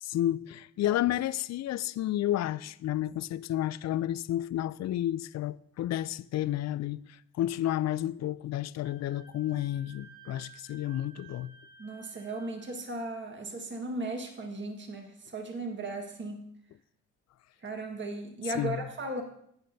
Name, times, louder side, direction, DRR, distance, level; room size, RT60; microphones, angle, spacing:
voice 1, 0.0-11.5 18.5-18.9, left 13 dB, 50° left, 0.4 m, -31 dB
Wind instrument woodwind instrument, 8.8-12.8, right 5 dB, 90° right, 1.4 m, -55 dB
voice 2, 11.8-16.4 17.6-19.2, right 2 dB, 35° right, 1.7 m, -36 dB
12.0 x 8.8 x 2.7 m
supercardioid pair, 60°, 34 cm